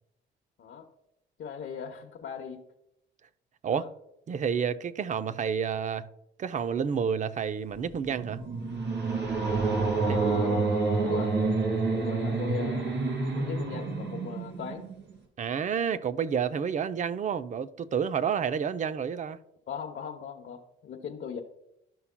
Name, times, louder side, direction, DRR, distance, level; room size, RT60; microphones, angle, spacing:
voice 1, 1.4-2.6 3.7-3.9 9.9-11.3 11.9-13.0 13.2-14.8 19.7-21.4, left 7 dB, 60° left, 0.9 m, -39 dB
voice 2, 4.3-6.1 6.4-8.4 10.1-10.2 15.4-19.4, right 7 dB, 40° right, 0.5 m, -29 dB
sound 1, 7.8-15.1, right 3 dB, 65° right, 2.9 m, -28 dB
12.5 x 5.6 x 2.2 m
cardioid pair, 90°, 20 cm